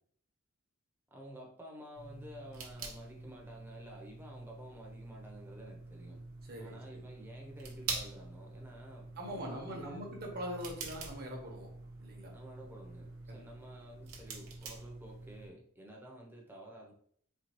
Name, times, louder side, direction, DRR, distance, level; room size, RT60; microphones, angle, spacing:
voice 1, 1.1-6.2 6.6-10.1 12.3-16.9, equal, 10° right, -1 dB, 0.7 m, -51 dB
sound 1, 2.0-15.5, right 4 dB, 70° right, 0.8 m, -46 dB
voice 2, 6.5-7.0 9.2-11.7 12.0-12.3 13.3-13.4, equal, 45° right, 0 dB, 1.0 m, -42 dB
4.3 x 2.4 x 2.9 m, 0.62 s
head